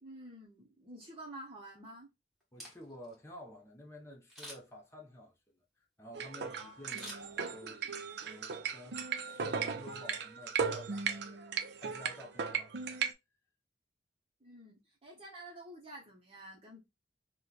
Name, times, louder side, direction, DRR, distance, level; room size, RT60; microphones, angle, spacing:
voice 1, 0.0-2.1 6.5-6.9 14.4-16.8, right 1 dB, 30° right, 0.8 m, -50 dB
Camera, 2.4-3.2 4.3-4.9 6.9-7.8 8.3-8.4, equal, ahead, 1.4 m, -49 dB
voice 2, 2.5-7.9 8.3-12.7, left 1 dB, 15° left, 0.7 m, -52 dB
sound 1, 6.1-13.1, right 6 dB, 65° right, 0.5 m, -37 dB
3.0 x 2.2 x 3.8 m
head